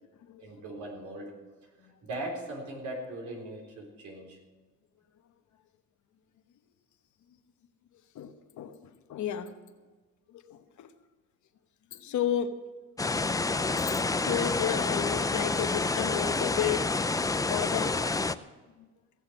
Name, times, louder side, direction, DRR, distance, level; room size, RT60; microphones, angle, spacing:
voice 1, 0.4-1.3 2.0-4.4, right 1 dB, 75° right, 3.9 m, -39 dB
voice 2, 8.1-9.5 10.3-10.9 11.9-12.6 13.0-13.4 13.7-16.9 17.5-18.0 18.8-18.9, left 10 dB, 75° left, 1.1 m, -33 dB
sound 1, 13.0-18.3, left 3 dB, 10° left, 0.4 m, -28 dB
16.5 x 7.2 x 7.3 m
cardioid pair, 90°, 30 cm